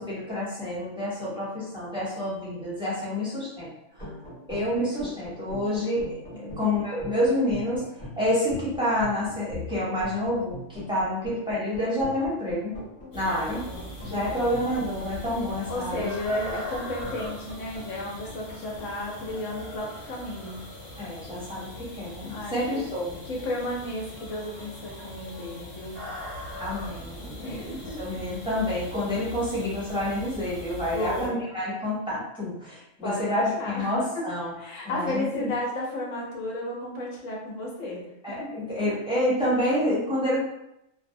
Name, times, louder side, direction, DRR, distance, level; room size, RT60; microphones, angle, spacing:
voice 1, 0.0-3.7 4.5-12.7 13.1-13.6 14.0-16.1 21.0-23.2 26.6-34.5 34.8-35.5 38.2-40.4, left 1 dB, 5° right, -9 dB, 0.6 m, -28 dB
sound 1, 3.9-20.8, left 1 dB, 30° left, 1.2 m, -42 dB
sound 2, 13.1-31.3, left 1 dB, 50° left, 1.0 m, -41 dB
voice 2, 13.7-14.5 15.7-20.6 22.3-22.8 23.2-26.0 27.4-28.0 30.9-31.4 33.0-33.9 34.2-34.3 34.6-38.0 38.4-38.5, left 1 dB, 80° left, -2 dB, 1.0 m, -33 dB
2.4 x 2.0 x 2.6 m, 0.84 s
omnidirectional pair, 1.3 m